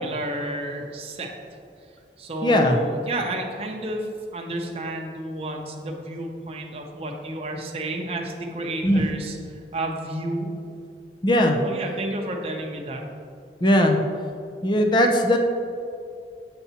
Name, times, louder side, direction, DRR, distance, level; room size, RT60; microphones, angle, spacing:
voice 1, 0.0-1.3 2.2-4.1 4.3-9.4 9.7-10.5 11.6-13.0, right 1 dB, 35° right, 1 dB, 0.7 m, -31 dB
voice 2, 2.4-2.8 8.8-9.0 11.2-11.6 13.6-14.0 14.6-15.4, left 1 dB, 25° left, 3 dB, 0.5 m, -19 dB
7.1 x 6.8 x 2.9 m, 2.5 s
head